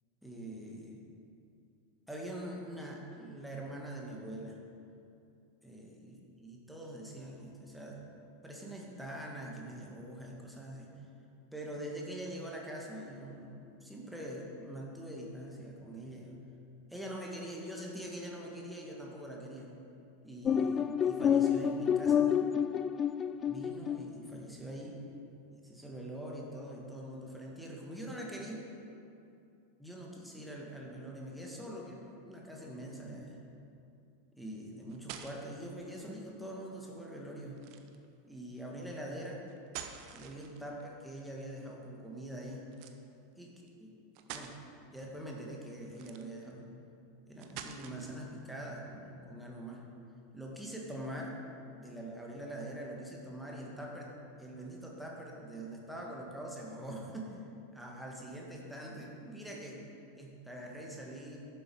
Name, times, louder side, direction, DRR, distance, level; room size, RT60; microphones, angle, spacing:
voice 1, 0.2-1.0 2.1-4.6 5.6-8.0 8.4-10.9 11.5-16.4 16.9-19.7 20.2-22.4 23.4-25.0 25.5-28.7 29.8-33.4 34.3-37.6 38.2-39.4 40.1-42.7 43.4-44.0 44.3-44.5 44.9-46.7 47.3-49.8 50.3-51.4 51.7-54.1 54.4-57.4 57.7-59.8 60.1-61.4, right 1 dB, ahead, -2 dB, 1.9 m, -44 dB
sound 1, 20.5-24.1, left 8 dB, 25° left, 0.4 m, -29 dB
sound 2, 34.6-35.6 37.6-38.0 39.5-40.8 42.7-43.0 43.7-43.8 44.1-44.6 45.9-46.5 47.4-48.2, right 8 dB, 45° right, 0.7 m, -46 dB
11.5 x 7.6 x 4.8 m, 2.6 s
figure-of-eight pair, 85°, 0 cm